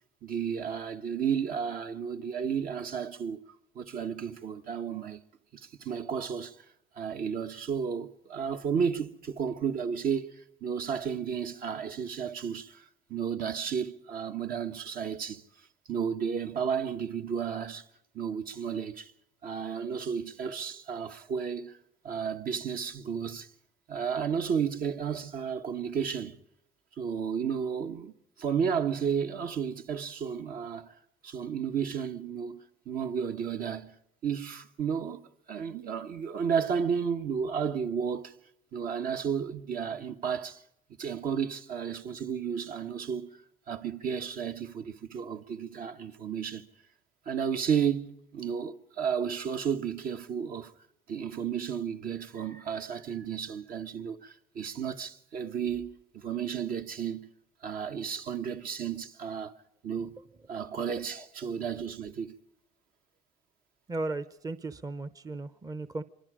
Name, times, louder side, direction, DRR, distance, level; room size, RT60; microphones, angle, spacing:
voice 1, 0.2-3.4 3.7-5.2 5.5-6.6 6.9-15.4 15.9-17.8 18.1-19.1 19.4-21.8 22.0-23.5 23.9-26.3 27.0-28.1 28.4-30.9 31.2-34.0 34.2-38.3 38.7-40.6 41.0-43.4 43.7-46.7 47.2-50.7 51.1-57.3 57.6-59.5 59.8-60.2 60.5-62.3, right 7 dB, 60° right, 1.5 m, -32 dB
voice 2, 63.9-66.0, right 2 dB, 20° right, 0.8 m, -36 dB
25.0 x 24.0 x 5.1 m
cardioid pair, 110°, 17 cm